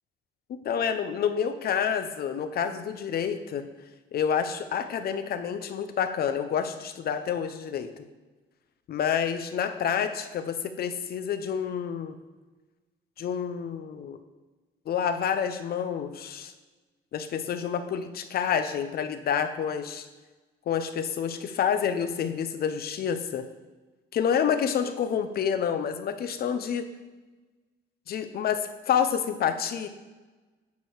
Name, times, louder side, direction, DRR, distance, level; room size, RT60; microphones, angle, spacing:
voice 1, 0.5-3.7 4.1-7.9 8.9-12.2 13.2-14.2 14.9-16.5 17.1-20.1 20.7-23.5 24.1-26.9 28.1-29.9, left 7 dB, 50° left, 10 dB, 0.6 m, -28 dB
9.6 x 4.8 x 4.7 m, 1.2 s
cardioid pair, 160°, 20 cm